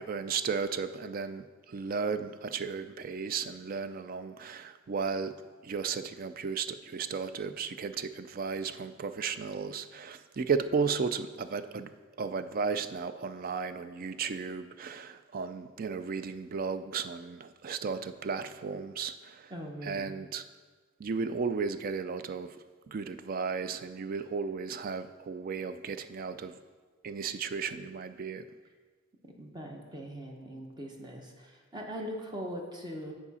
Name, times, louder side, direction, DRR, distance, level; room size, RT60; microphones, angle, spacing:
voice 1, 0.0-5.3 5.6-11.9 12.2-19.5 19.8-20.4 21.0-22.5 22.9-26.6 27.0-28.4, right 5 dB, 45° right, 11 dB, 0.3 m, -34 dB
voice 2, 19.5-20.1 29.4-33.1, equal, 20° right, 1 dB, 0.9 m, -41 dB
9.7 x 4.8 x 4.1 m, 1.4 s
head